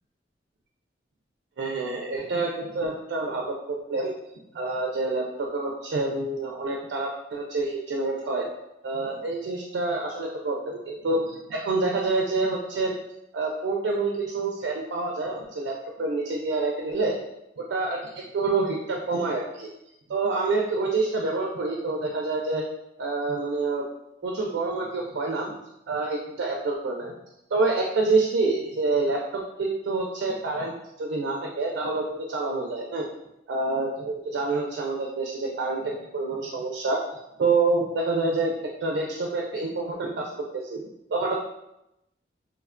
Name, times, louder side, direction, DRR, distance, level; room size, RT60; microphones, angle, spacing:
voice 1, 1.6-4.1 4.5-8.5 8.8-13.0 13.3-17.2 17.6-19.7 20.1-22.6 23.0-23.8 24.2-25.6 25.9-27.1 27.5-30.7 31.0-33.1 33.5-38.5 38.8-40.8 41.1-41.4, right 3 dB, 90° right, 0 dB, 0.4 m, -27 dB
3.0 x 2.1 x 2.4 m, 0.87 s
head